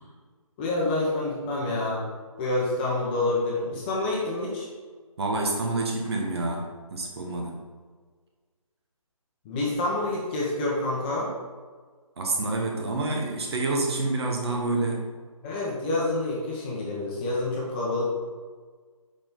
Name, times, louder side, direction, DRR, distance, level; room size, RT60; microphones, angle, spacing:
voice 1, 0.6-2.1 2.4-4.7 9.4-11.3 15.4-18.1, left 2 dB, 15° left, -5 dB, 1.0 m, -27 dB
voice 2, 5.2-7.6 12.2-15.0, right 2 dB, 45° right, 0 dB, 1.5 m, -28 dB
6.9 x 5.3 x 3.9 m, 1.5 s
figure-of-eight pair, 160°, 18 cm